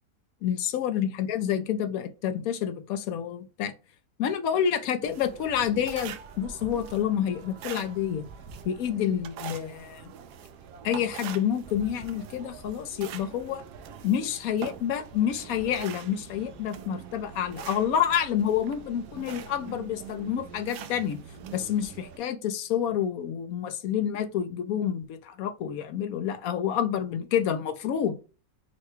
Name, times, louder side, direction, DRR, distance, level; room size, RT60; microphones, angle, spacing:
voice 1, 0.4-3.7 4.2-8.2 8.6-10.1 10.8-13.6 14.0-21.2 21.5-28.2, left 9 dB, 70° left, 1.0 m, -28 dB
sound 1, 5.0-22.2, right 7 dB, 80° right, 1.1 m, -43 dB
5.7 x 2.2 x 3.0 m
omnidirectional pair, 1.7 m